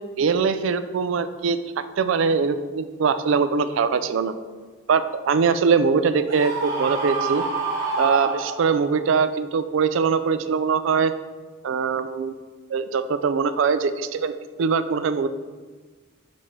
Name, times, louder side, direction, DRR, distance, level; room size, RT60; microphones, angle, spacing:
voice 1, 0.2-1.6 2.0-4.3 4.9-7.4 8.0-11.1 11.6-12.3 12.7-15.3, right 5 dB, 75° right, 11 dB, 0.4 m, -22 dB
Screaming, 6.3-9.0, right 3 dB, 45° right, 1.2 m, -27 dB
5.9 x 5.2 x 3.2 m, 1.4 s
head